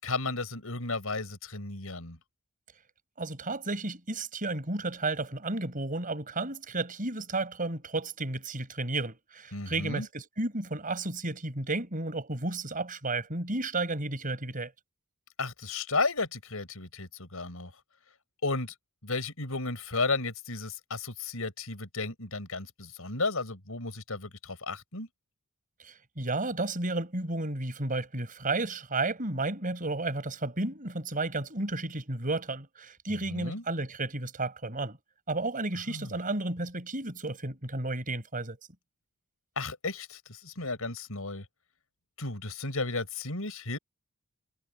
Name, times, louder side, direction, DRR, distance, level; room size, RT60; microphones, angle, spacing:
voice 1, 0.0-2.2 9.5-10.1 15.4-17.7 18.4-18.7 19.0-25.1 33.3-33.6 35.9-36.1 39.6-41.5 42.2-43.8, left 3 dB, 80° left, 5.3 m, -33 dB
voice 2, 3.2-14.7 25.8-35.0 35.3-38.6, right 2 dB, 40° right, 5.0 m, -32 dB
head